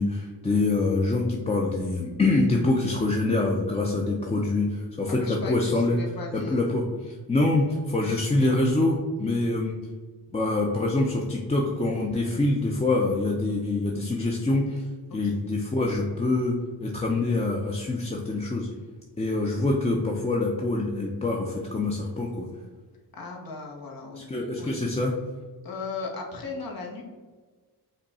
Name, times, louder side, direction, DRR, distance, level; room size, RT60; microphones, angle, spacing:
voice 1, 0.0-6.0 6.3-9.8 10.3-14.8 15.1-18.7 19.2-22.5 24.2-25.1, left 2 dB, 15° left, -1 dB, 0.5 m, -25 dB
voice 2, 5.1-6.8 12.1-12.2 15.3-15.4 23.1-24.2 24.6-24.7 25.6-27.0, left 4 dB, 65° left, 0 dB, 1.1 m, -37 dB
5.2 x 2.3 x 4.1 m, 1.4 s
cardioid pair, 85°, 38 cm